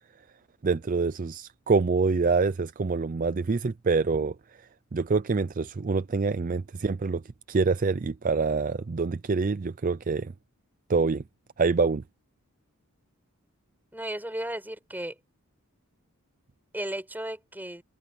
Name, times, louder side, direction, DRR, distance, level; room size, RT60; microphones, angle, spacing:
voice 1, 0.6-4.3 4.9-7.2 7.5-10.3 10.9-11.2 11.6-12.0, right 4 dB, 35° right, 0.4 m, -26 dB
voice 2, 13.9-15.1 16.7-17.8, right 1 dB, 10° right, 6.2 m, -34 dB
head